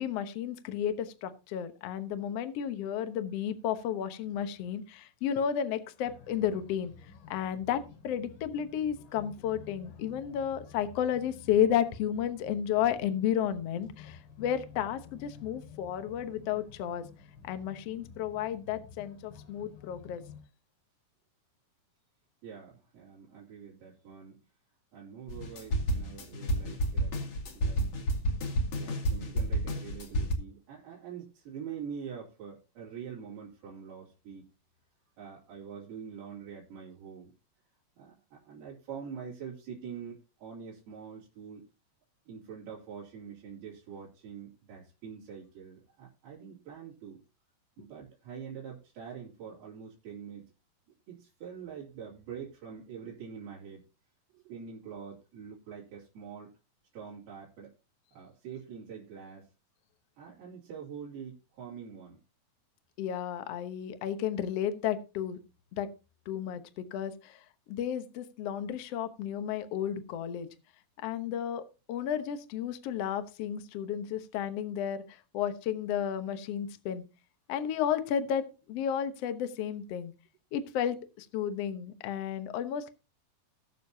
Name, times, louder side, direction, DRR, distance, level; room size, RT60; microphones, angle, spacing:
voice 1, 0.0-6.9 7.3-17.0 17.4-20.2 63.0-65.4 65.7-65.9 66.3-67.4 67.7-70.5 71.0-77.0 77.5-80.1 80.5-82.9, left 9 dB, 70° left, 10 dB, 1.5 m, -32 dB
sound 1, 6.0-20.4, left 6 dB, 85° left, 4.2 m, -52 dB
voice 2, 22.4-24.4 24.9-27.2 27.5-27.9 28.8-34.5 35.2-37.3 38.0-41.6 42.3-47.2 47.8-50.5 51.1-53.8 54.3-56.5 56.9-57.7 58.1-59.5 60.2-62.2, right 7 dB, 90° right, -7 dB, 4.9 m, -45 dB
sound 2, 25.3-30.3, right 1 dB, 50° left, 2.7 m, -30 dB
20.0 x 6.9 x 2.8 m, 0.29 s
omnidirectional pair, 4.3 m